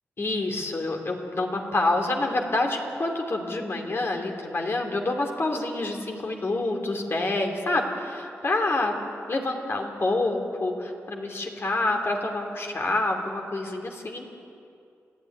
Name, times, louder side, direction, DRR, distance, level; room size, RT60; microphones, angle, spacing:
voice 1, 0.2-8.9 9.3-14.2, left 2 dB, 50° left, 2 dB, 2.9 m, -27 dB
30.0 x 10.0 x 9.6 m, 2.5 s
cardioid pair, 70°, 5 cm